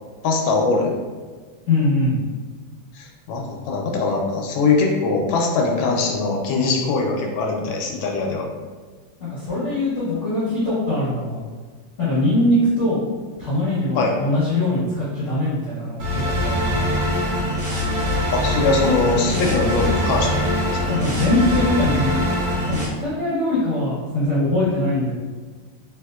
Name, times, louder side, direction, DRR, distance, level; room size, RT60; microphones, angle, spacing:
voice 1, 0.2-0.9 2.9-8.4 13.9-14.1 18.3-21.0, left 3 dB, 85° left, 0 dB, 1.3 m, -22 dB
voice 2, 1.7-2.2 9.2-11.4 12.0-13.0 13.4-16.9 20.9-22.2 22.7-25.1, left 1 dB, 50° left, -11 dB, 1.0 m, -22 dB
sound 1, 16.0-22.9, equal, 90° right, 1.7 m, -22 dB
3.4 x 3.1 x 2.3 m, 1.4 s
omnidirectional pair, 2.1 m